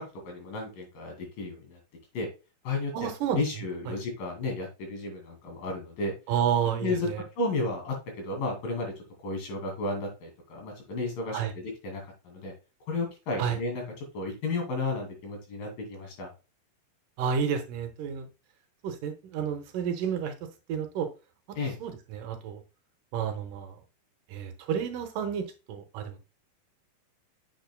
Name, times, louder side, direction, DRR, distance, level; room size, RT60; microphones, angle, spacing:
voice 1, 0.2-1.8 2.1-2.3 2.6-6.1 6.8-7.1 7.4-8.9 9.2-12.5 12.9-13.8 14.1-16.3 21.6-21.8, left 3 dB, 75° left, 4.0 m, -33 dB
voice 2, 2.9-3.4 3.9-4.0 6.3-7.2 11.3-11.5 13.4-13.6 17.2-18.3 18.8-20.3 20.7-21.1 21.5-22.6 23.1-23.8 24.3-26.2, right 8 dB, 75° right, 2.4 m, -30 dB
8.0 x 6.6 x 2.2 m
omnidirectional pair, 4.1 m